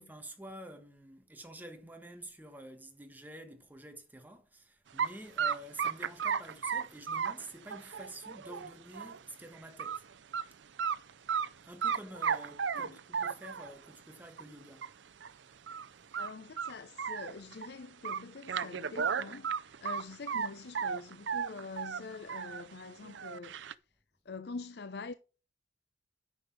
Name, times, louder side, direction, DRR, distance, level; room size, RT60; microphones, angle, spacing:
voice 1, 0.0-10.0 11.6-14.9, right 1 dB, 10° right, 1.3 m, -49 dB
sound 1, 5.0-5.1 5.4-9.2 9.5-10.0 10.3-10.4 10.8-11.5 11.8-13.7 14.4-14.5 14.8-14.9 15.2-15.3 15.7-15.9 16.1-17.7 18.0-20.5 20.7-22.6 23.0-23.7, right 7 dB, 70° right, 0.5 m, -34 dB
voice 2, 16.2-23.6 24.2-25.1, left 4 dB, 55° left, 0.6 m, -45 dB
9.7 x 6.4 x 4.7 m
head